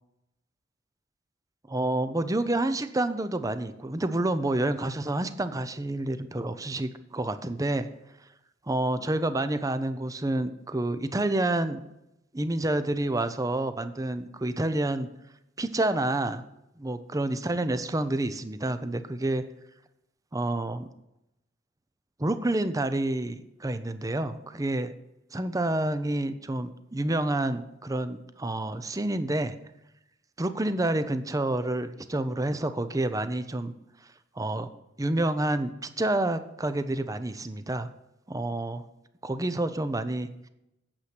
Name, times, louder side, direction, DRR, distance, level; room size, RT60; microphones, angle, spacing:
voice 1, 1.7-7.9 8.7-11.8 12.3-15.1 15.6-16.4 16.8-19.4 20.3-20.9 22.2-24.9 25.3-29.5 30.4-33.7 34.4-34.7 35.0-37.9 38.3-38.8 39.2-40.3, right 1 dB, 20° right, 11 dB, 0.6 m, -28 dB
8.8 x 8.0 x 6.0 m, 0.87 s
head